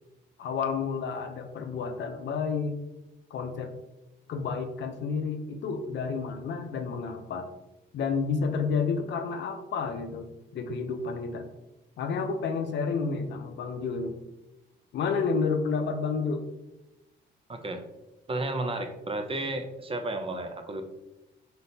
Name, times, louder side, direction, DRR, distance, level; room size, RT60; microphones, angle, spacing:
voice 1, 0.4-2.8 3.3-3.7 4.3-7.5 7.9-11.5 12.0-14.2 14.9-16.4, left 5 dB, 65° left, 6 dB, 0.6 m, -30 dB
voice 2, 17.5-17.8 18.3-20.8, right 2 dB, 30° right, 7 dB, 0.5 m, -32 dB
4.1 x 4.0 x 2.7 m, 0.96 s
cardioid pair, 90°, 20 cm